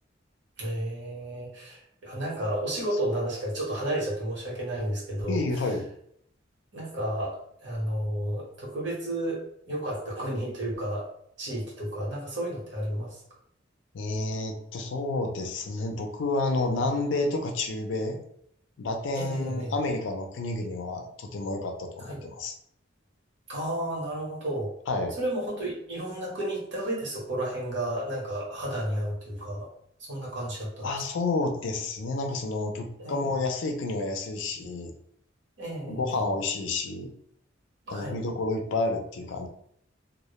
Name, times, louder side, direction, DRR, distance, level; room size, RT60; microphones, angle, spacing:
voice 1, 0.6-5.7 6.7-11.1 11.4-13.2 19.1-19.7 22.0-22.2 23.5-24.7 25.2-29.7 30.0-30.9 33.0-33.3 35.6-36.2 37.9-38.2, right 1 dB, 65° right, -4 dB, 0.9 m, -32 dB
voice 2, 5.3-5.9 13.9-18.2 18.8-22.5 24.9-25.2 30.8-34.9 35.9-37.1 37.9-39.5, left 2 dB, 75° left, 4 dB, 0.4 m, -30 dB
2.0 x 2.0 x 2.9 m, 0.70 s
head